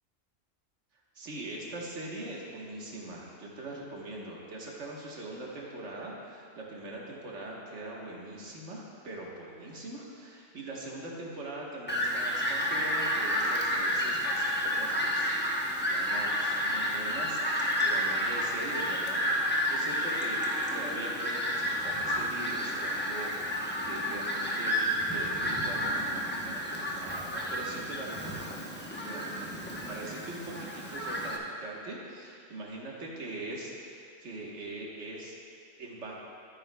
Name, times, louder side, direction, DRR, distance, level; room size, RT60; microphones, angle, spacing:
voice 1, 1.1-19.2 19.7-23.3 23.8-24.7 25.1-28.6 29.0-35.3 35.8-36.1, right 2 dB, 70° right, -3 dB, 1.6 m, -42 dB
Fowl, 11.9-31.4, equal, 10° left, 0.7 m, -31 dB
13.5 x 9.4 x 2.3 m, 2.4 s
omnidirectional pair, 1.3 m